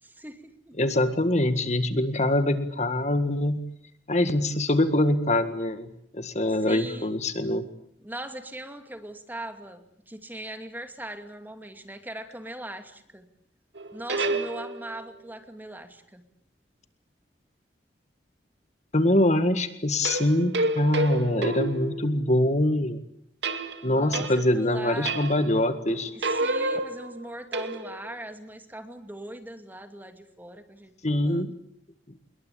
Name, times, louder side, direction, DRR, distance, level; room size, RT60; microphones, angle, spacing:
voice 1, 0.0-0.8 6.6-7.2 8.0-13.3 13.9-16.2 23.8-25.2 26.1-31.5, right 1 dB, 10° right, 7 dB, 2.6 m, -40 dB
voice 2, 0.8-3.6 4.1-7.6 18.9-23.0 23.8-26.1 31.0-31.5, left 1 dB, 40° left, 10 dB, 1.8 m, -24 dB
sound 1, 13.8-15.1 20.0-22.5 23.4-24.7 25.1-25.6 25.9-28.1, right 2 dB, 70° right, 2.5 m, -30 dB
26.5 x 22.5 x 8.6 m, 0.70 s
head